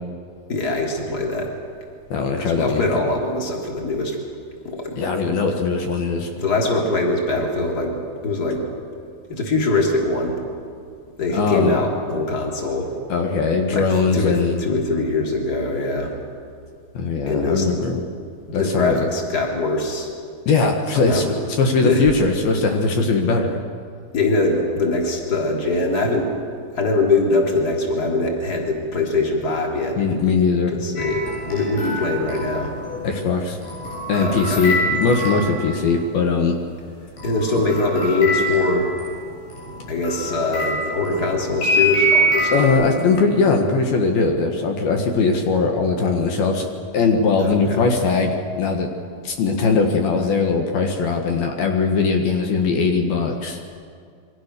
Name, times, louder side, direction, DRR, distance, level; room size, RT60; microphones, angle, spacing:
voice 1, 0.5-1.5 2.4-4.2 4.7-5.0 6.4-7.9 8.2-8.6 9.3-10.4 11.2-12.9 13.7-16.1 17.3-17.7 18.5-20.1 20.9-21.2 21.8-22.0 24.1-26.3 26.8-30.0 30.7-32.7 34.2-34.7 37.2-38.9 39.9-42.9 47.4-47.8, left 2 dB, 25° left, 0 dB, 3.5 m, -22 dB
voice 2, 2.1-2.8 5.0-6.3 11.3-11.8 13.1-14.6 16.9-18.0 18.5-19.1 20.5-23.6 30.0-30.7 33.0-33.6 34.1-36.6 42.5-46.7 46.9-48.9 49.2-53.6, left 4 dB, 70° left, 3 dB, 3.4 m, -20 dB
sound 1, 31.0-36.0 37.2-42.7, equal, 85° left, 9.0 m, -25 dB
27.5 x 23.5 x 6.8 m, 2.3 s
omnidirectional pair, 4.5 m